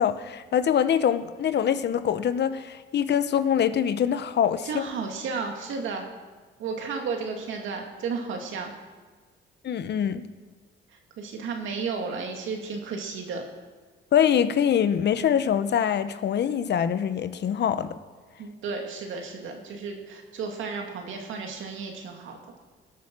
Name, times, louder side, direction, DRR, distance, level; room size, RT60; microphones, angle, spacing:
voice 1, 0.0-4.8 9.6-10.2 14.1-17.9, left 9 dB, 60° left, 12 dB, 0.9 m, -24 dB
voice 2, 4.6-6.0 6.6-8.7 11.2-13.4 18.4-22.4, right 5 dB, 80° right, 2 dB, 2.4 m, -33 dB
16.5 x 8.7 x 6.1 m, 1.4 s
cardioid pair, 90°, 20 cm